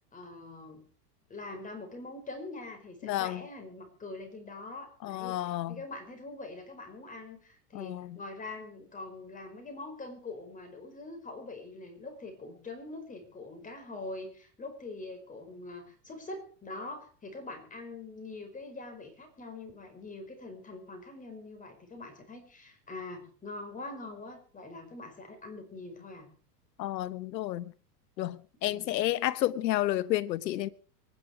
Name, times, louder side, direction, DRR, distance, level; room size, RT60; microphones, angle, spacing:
voice 1, 0.1-0.8 1.3-26.3 28.6-29.1, left 2 dB, 15° left, 4.9 m, -44 dB
voice 2, 3.0-3.4 5.0-5.8 7.7-8.2 26.8-27.7 28.2-30.7, left 14 dB, 85° left, 1.0 m, -31 dB
24.0 x 10.5 x 4.9 m
supercardioid pair, 130°, 49 cm